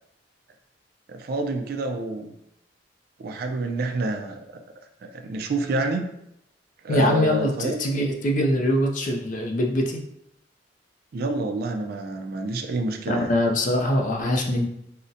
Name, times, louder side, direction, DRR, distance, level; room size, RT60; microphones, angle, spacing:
voice 1, 1.1-2.3 3.2-4.4 5.1-6.0 6.8-7.9 11.1-13.4, right 2 dB, 55° right, 5 dB, 0.3 m, -28 dB
voice 2, 6.9-10.0 13.1-14.7, left 1 dB, 45° left, 1 dB, 0.4 m, -23 dB
3.8 x 2.1 x 2.6 m, 0.78 s
head